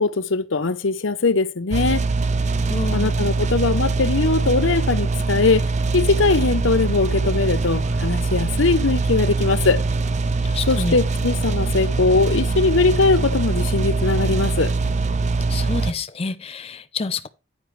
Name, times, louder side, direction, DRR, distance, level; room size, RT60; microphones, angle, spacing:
voice 1, 0.0-2.1 2.9-5.6 5.9-9.8 10.7-14.7, left 3 dB, 80° left, 0.8 m, -20 dB
sound 1, 1.7-15.9, right 3 dB, 35° right, 0.6 m, -22 dB
voice 2, 2.7-3.1 10.4-11.0 15.5-17.3, left 4 dB, 30° left, 0.5 m, -28 dB
9.7 x 9.3 x 3.3 m
head